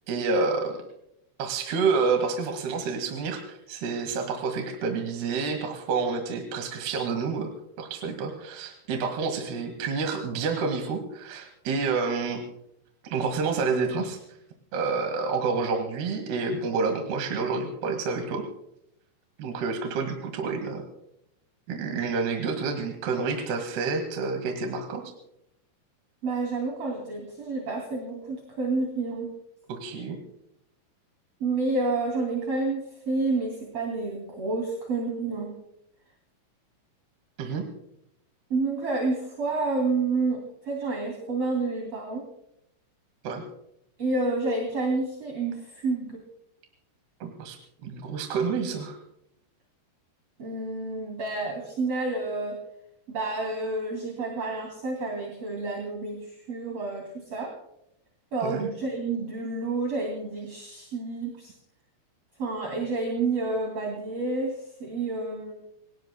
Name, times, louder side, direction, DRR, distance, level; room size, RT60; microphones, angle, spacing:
voice 1, 0.1-0.8 1.4-7.5 7.8-12.4 13.0-14.2 14.7-18.4 19.4-20.8 21.7-25.0 29.7-30.2 37.4-37.7 43.2-43.4 47.2-47.6 47.8-49.0 58.4-58.7, right 4 dB, 60° right, 3 dB, 3.6 m, -28 dB
voice 2, 26.2-29.3 31.4-35.6 38.5-42.2 44.0-46.2 50.4-52.6 53.1-57.5 58.3-61.5 62.4-65.5, right 3 dB, 35° right, 0 dB, 3.2 m, -29 dB
27.5 x 18.5 x 2.3 m, 0.78 s
omnidirectional pair, 5.8 m